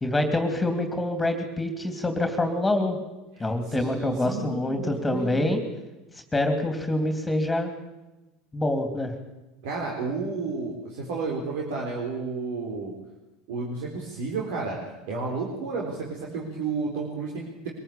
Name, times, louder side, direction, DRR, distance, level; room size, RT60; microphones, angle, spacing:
voice 1, 0.0-3.0 3.4-5.6 6.3-7.7 8.5-9.1, left 1 dB, 10° left, 7 dB, 2.9 m, -26 dB
voice 2, 3.4-5.5 9.6-12.9 13.5-14.8 15.1-17.7, right 4 dB, 75° right, -2 dB, 4.2 m, -32 dB
23.0 x 14.5 x 8.7 m, 1.1 s
supercardioid pair, 100°, 0 cm